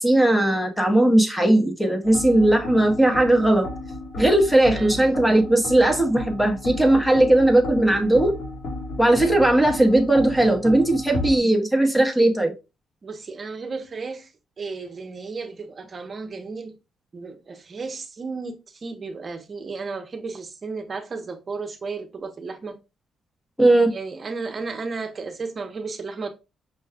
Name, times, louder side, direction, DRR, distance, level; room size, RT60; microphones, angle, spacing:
voice 1, 0.0-3.7 4.2-8.4 9.0-12.5 23.6-23.9, right 1 dB, 5° left, 0.8 m, -18 dB
sound 1, 2.0-11.4, left 2 dB, 65° left, 1.7 m, -34 dB
voice 2, 4.7-5.1 13.0-14.3 14.6-16.8 17.1-22.8 23.9-26.3, right 4 dB, 35° right, 0.8 m, -34 dB
5.5 x 2.3 x 3.4 m
cardioid pair, 145°, 0 cm